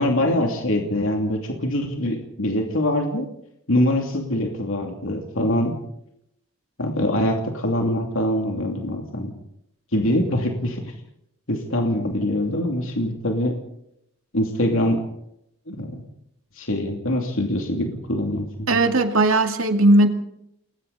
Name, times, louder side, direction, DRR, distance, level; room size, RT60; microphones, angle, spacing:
voice 1, 0.0-3.3 3.7-5.8 6.8-9.3 9.9-10.8 11.5-13.6 14.3-15.0 15.7-16.0 16.6-18.8, left 1 dB, 75° left, 2 dB, 2.8 m, -23 dB
voice 2, 18.7-20.1, right 2 dB, 80° right, 5 dB, 2.3 m, -17 dB
29.5 x 21.0 x 4.2 m, 0.78 s
head